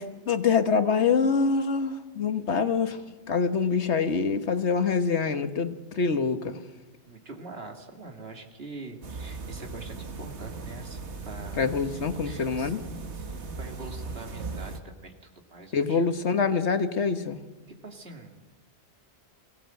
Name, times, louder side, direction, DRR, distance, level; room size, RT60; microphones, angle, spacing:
voice 1, 0.0-3.0 3.3-6.6 11.6-12.8 15.7-17.4, left 5 dB, 75° left, 9 dB, 1.6 m, -25 dB
voice 2, 7.1-16.1 17.8-18.5, right 3 dB, 60° right, 3 dB, 2.6 m, -44 dB
sound 1, 9.0-14.8, right 3 dB, 80° right, 1.7 m, -38 dB
24.0 x 17.0 x 7.8 m, 1.1 s
omnidirectional pair, 1.2 m